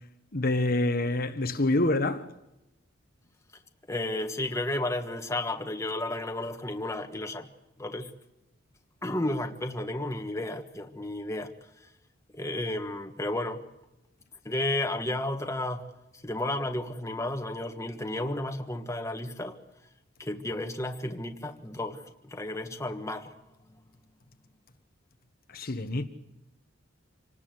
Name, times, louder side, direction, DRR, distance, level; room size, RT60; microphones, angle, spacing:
voice 1, 0.3-2.2 25.5-26.0, left 2 dB, 50° left, 1.3 m, -26 dB
voice 2, 3.9-7.5 7.8-8.1 9.0-11.5 12.3-13.6 14.4-15.8 16.2-19.6 20.2-23.4, left 1 dB, 15° left, 1.5 m, -32 dB
27.0 x 19.0 x 7.8 m
head